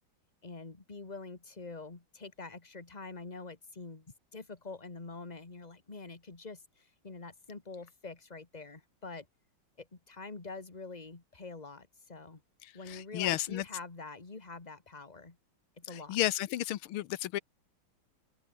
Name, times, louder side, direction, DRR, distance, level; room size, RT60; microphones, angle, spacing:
voice 1, 0.4-9.3 9.8-12.4 12.7-15.4 15.8-16.2, left 3 dB, 20° left, 2.0 m, -46 dB
voice 2, 12.6-13.7 15.9-17.4, left 14 dB, 90° left, 1.7 m, -33 dB
open air
omnidirectional pair, 2.3 m